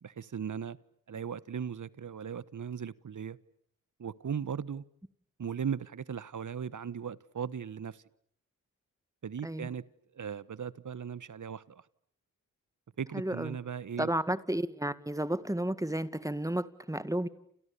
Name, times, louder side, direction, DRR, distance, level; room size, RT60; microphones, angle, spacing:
voice 1, 0.0-0.8 1.1-3.4 4.0-4.8 5.4-8.0 9.2-9.8 10.1-11.8 13.0-14.1, right 7 dB, 65° right, 1.3 m, -38 dB
voice 2, 13.1-13.6 14.0-17.3, right 1 dB, 10° right, 2.0 m, -32 dB
29.5 x 28.5 x 7.0 m
cardioid pair, 50°, 33 cm